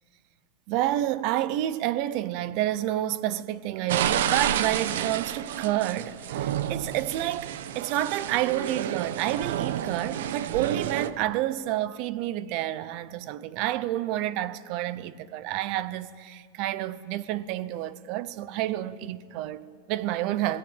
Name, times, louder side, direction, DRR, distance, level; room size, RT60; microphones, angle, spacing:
voice 1, 0.7-20.6, right 13 dB, 35° right, 0.7 m, -29 dB
sound 1, 3.9-11.1, right 10 dB, 70° right, 1.0 m, -30 dB
27.0 x 18.5 x 8.9 m
supercardioid pair, 180°, 0 cm